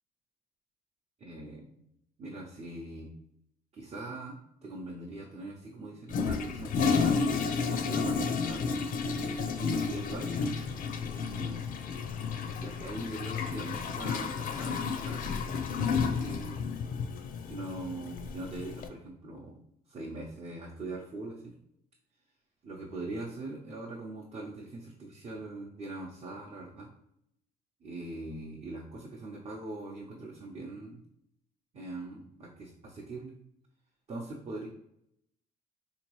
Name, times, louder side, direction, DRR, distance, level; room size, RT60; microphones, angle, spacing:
voice 1, 1.2-1.7 2.2-3.1 3.7-8.7 9.6-10.6 11.1-11.7 12.6-15.5 15.9-16.6 17.4-19.6 19.9-21.5 22.6-26.9 27.8-31.0 31.7-33.3 34.1-34.7, right 2 dB, 35° right, -3 dB, 0.7 m, -41 dB
Toilet flush, 6.1-18.9, left 5 dB, 55° left, 0.5 m, -32 dB
3.9 x 2.9 x 3.0 m, 0.75 s
cardioid pair, 110°, 17 cm